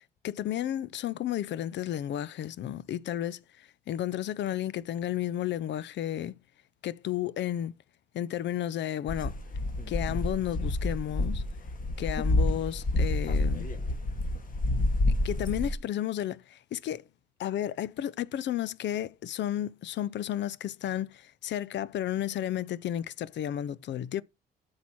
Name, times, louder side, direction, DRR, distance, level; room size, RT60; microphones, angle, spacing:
voice 1, 0.0-6.3 6.8-7.7 8.1-9.4 9.9-11.4 12.0-13.7 15.2-17.0 17.4-24.2, left 11 dB, 65° left, 0.5 m, -32 dB
sound 1, 9.1-15.7, left 2 dB, 45° left, 1.7 m, -28 dB
8.2 x 4.7 x 6.0 m
cardioid pair, 90°, 20 cm